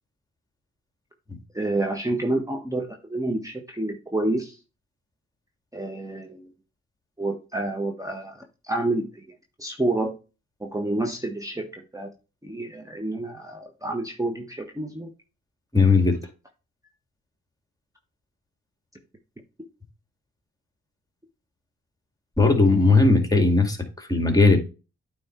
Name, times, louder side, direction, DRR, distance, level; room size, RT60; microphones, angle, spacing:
voice 1, 1.5-4.5 5.7-6.5 7.2-9.2 9.6-10.2 10.6-12.1 12.4-15.1, right 2 dB, 10° right, 1.3 m, -29 dB
voice 2, 15.7-16.2 22.4-24.6, left 3 dB, 15° left, 2.1 m, -18 dB
8.9 x 3.5 x 4.4 m
supercardioid pair, 50°, 29 cm